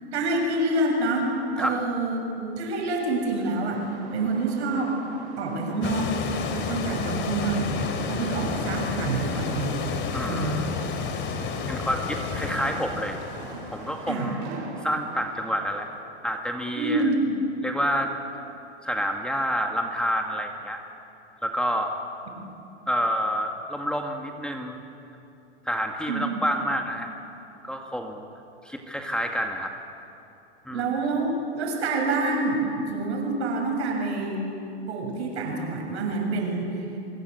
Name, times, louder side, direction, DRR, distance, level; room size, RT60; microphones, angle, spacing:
voice 1, 0.1-3.8 4.1-5.0 5.4-6.2 6.5-7.8 8.1-9.8 10.2-10.6 14.1-14.3 16.8-17.3 26.1-26.3 30.7-34.4 34.9-36.7, right 2 dB, 75° right, 2 dB, 7.4 m, -27 dB
sound 1, 3.7-15.9, right 3 dB, 50° right, 7.3 m, -43 dB
sound 2, 5.8-14.2, left 5 dB, 35° left, 3.3 m, -31 dB
voice 2, 10.1-10.7 11.7-13.2 13.7-14.4 14.8-15.9 16.2-17.1 17.6-18.1 18.8-20.8 21.4-21.9 22.9-24.8 25.7-27.1 27.6-28.3 28.6-29.7 30.7-30.9, equal, 5° left, 3 dB, 1.9 m, -28 dB
24.0 x 22.0 x 8.2 m, 2.7 s
hypercardioid pair, 115°, 34 cm